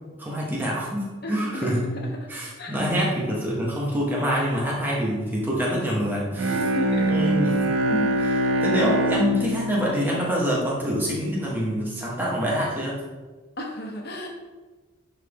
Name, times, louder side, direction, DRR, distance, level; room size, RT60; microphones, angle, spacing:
voice 1, 0.0-1.9 2.3-6.6 7.0-7.5 7.9-13.0, equal, 10° right, -5 dB, 1.5 m, -26 dB
voice 2, 1.2-2.3 2.6-3.1 6.5-7.1 13.6-14.3, left 1 dB, 50° left, 1 dB, 1.2 m, -35 dB
Bowed string instrument, 6.3-11.2, right 1 dB, 85° right, 0.9 m, -24 dB
10.5 x 3.8 x 3.7 m, 1.3 s
head